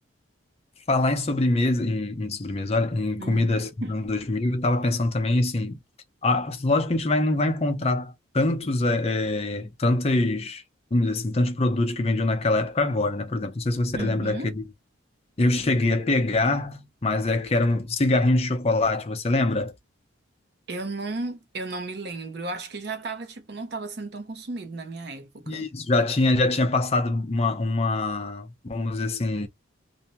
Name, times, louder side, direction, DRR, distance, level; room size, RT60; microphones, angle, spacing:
voice 1, 0.9-5.8 6.2-10.6 10.9-14.6 15.4-19.7 25.5-29.5, left 2 dB, 30° left, 0.6 m, -24 dB
voice 2, 3.2-4.0 13.9-14.5 20.7-25.7, right 3 dB, 55° right, 0.7 m, -34 dB
2.7 x 2.2 x 2.7 m
head